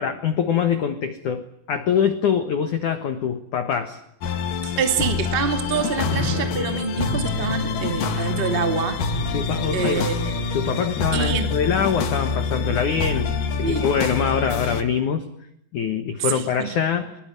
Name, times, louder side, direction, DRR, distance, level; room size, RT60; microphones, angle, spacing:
voice 1, 0.0-4.0 9.3-10.1 10.5-15.3 15.7-17.1, left 7 dB, 80° left, 9 dB, 1.7 m, -24 dB
sound 1, 4.2-14.8, left 5 dB, 50° left, 3.0 m, -26 dB
voice 2, 4.6-9.0 9.7-10.4 11.1-11.5 13.6-13.9 16.2-16.7, right 6 dB, 25° right, 7 dB, 1.3 m, -26 dB
sound 2, 6.0-13.3, equal, 85° right, 10.0 m, -34 dB
25.0 x 21.5 x 9.4 m, 0.76 s
omnidirectional pair, 5.9 m